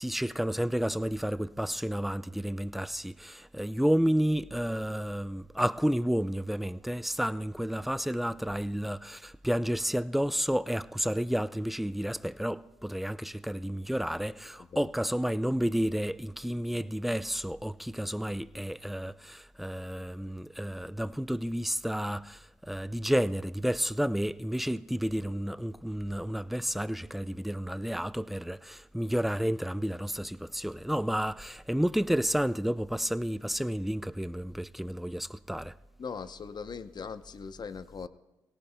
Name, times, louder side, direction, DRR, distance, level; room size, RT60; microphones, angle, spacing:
voice 1, 0.0-35.7, equal, ahead, 0.4 m, -31 dB
voice 2, 36.0-38.1, left 5 dB, 50° left, 0.7 m, -40 dB
18.5 x 17.5 x 2.2 m
supercardioid pair, 50°, 9 cm